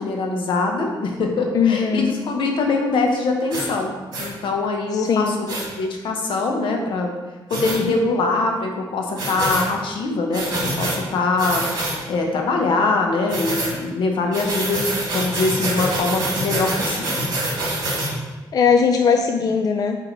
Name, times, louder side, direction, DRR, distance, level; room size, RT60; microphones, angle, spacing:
voice 1, 0.0-3.9 4.2-7.1 7.5-11.7 12.1-17.3, left 3 dB, 80° left, 2 dB, 1.0 m, -23 dB
voice 2, 1.5-2.1 4.9-5.4 18.5-20.0, left 6 dB, 50° left, 4 dB, 0.4 m, -19 dB
sound 1, 3.5-3.7 4.1-4.3 5.5-5.6 7.5-7.8 9.2-9.7 10.3-11.0 11.4-12.0 13.3-13.7 14.3-18.1, right 1 dB, 55° right, 2.0 m, -25 dB
7.8 x 2.9 x 4.5 m, 1.2 s
cardioid pair, 130°, 8 cm